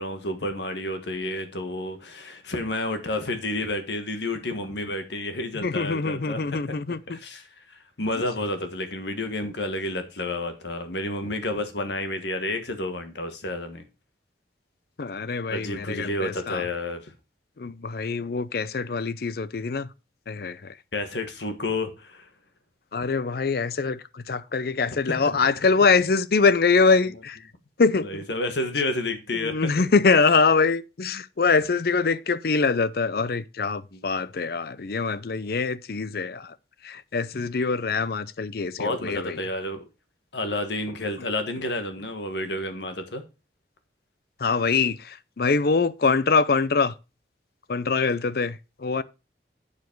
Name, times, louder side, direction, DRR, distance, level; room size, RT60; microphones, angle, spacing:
voice 1, 0.0-6.6 6.9-13.8 15.5-17.1 20.9-22.3 25.1-25.4 28.0-29.7 33.9-34.1 38.8-39.8 40.3-43.2, left 2 dB, 75° left, 1.5 m, -30 dB
voice 2, 5.6-7.2 15.0-16.6 17.6-19.9 20.3-20.7 22.9-27.4 27.8-28.2 29.3-36.5 36.8-39.4 44.4-46.9 47.7-49.0, left 4 dB, 55° left, 0.5 m, -24 dB
8.3 x 7.1 x 4.5 m
head